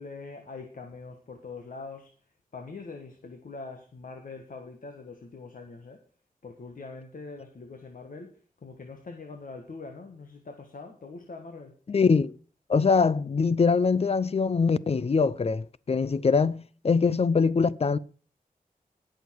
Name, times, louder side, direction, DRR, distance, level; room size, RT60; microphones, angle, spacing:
voice 1, 0.0-6.0 6.4-11.7, left 3 dB, 65° left, 1.6 m, -43 dB
voice 2, 11.9-12.3 12.7-18.0, left 5 dB, 45° left, 0.6 m, -23 dB
18.5 x 6.6 x 4.7 m
wide cardioid pair, 115°, 15 cm